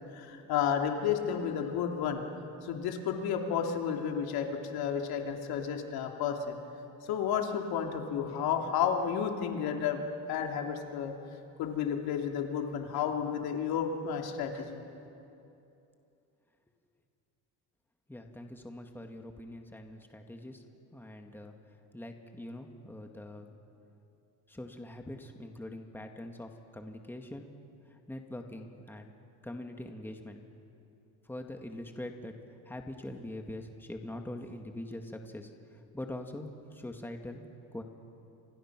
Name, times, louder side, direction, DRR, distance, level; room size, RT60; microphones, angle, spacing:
voice 1, 0.1-2.2 2.6-6.6 7.0-10.0 10.3-11.1 11.6-14.8, left 7 dB, 75° left, 2 dB, 3.0 m, -32 dB
voice 2, 18.1-20.6 20.9-23.6 24.5-27.5 27.9-29.1 29.4-30.4 31.2-32.3 32.7-37.8, left 1 dB, 5° left, 4 dB, 2.1 m, -43 dB
30.0 x 26.5 x 6.2 m, 2.8 s
cardioid pair, 105°, 38 cm